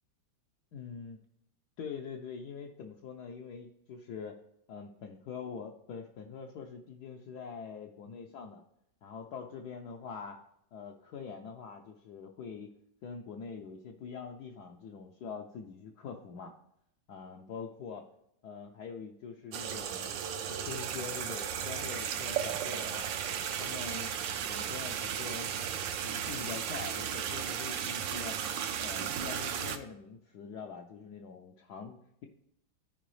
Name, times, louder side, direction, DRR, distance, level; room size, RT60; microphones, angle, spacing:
voice 1, 0.7-1.2 1.8-4.4 4.7-8.6 9.0-10.4 10.7-12.7 13.0-16.5 17.1-18.0 18.4-23.1 23.6-24.1 24.5-25.6 26.0-28.4 28.8-32.3, left 6 dB, 70° left, 1 dB, 1.1 m, -44 dB
sound 1, 19.5-29.8, right 8 dB, 75° right, 1.3 m, -35 dB
13.0 x 4.7 x 3.2 m, 0.75 s
omnidirectional pair, 2.1 m